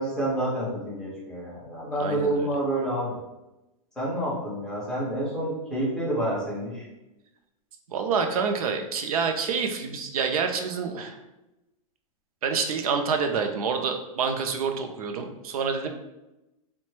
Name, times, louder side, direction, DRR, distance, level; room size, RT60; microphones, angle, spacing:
voice 1, 0.0-3.2 4.0-6.8, right 1 dB, 5° left, -8 dB, 0.3 m, -28 dB
voice 2, 2.0-2.5 7.9-11.2 12.4-15.9, right 5 dB, 75° right, 5 dB, 0.5 m, -27 dB
2.9 x 2.2 x 3.1 m, 0.96 s
supercardioid pair, 175°, 19 cm